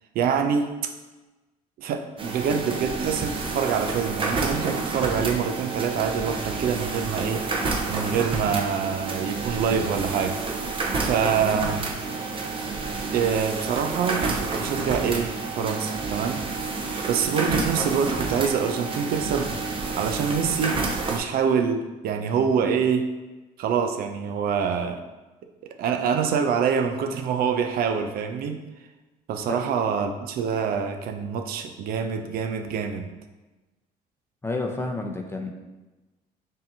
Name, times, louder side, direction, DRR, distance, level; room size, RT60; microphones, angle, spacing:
voice 1, 0.1-0.9 1.8-7.5 7.9-10.4 11.0-11.9 13.1-16.5 17.1-19.5 20.0-20.8 21.1-23.1 23.6-25.0 25.8-28.6 29.3-33.1, right 6 dB, 65° right, 6 dB, 0.4 m, -25 dB
sound 1, 2.2-21.2, right 3 dB, 30° right, 0.7 m, -29 dB
voice 2, 34.4-35.5, left 2 dB, 15° left, 3 dB, 0.6 m, -30 dB
5.4 x 2.8 x 2.6 m, 1.1 s
supercardioid pair, 80°, 17 cm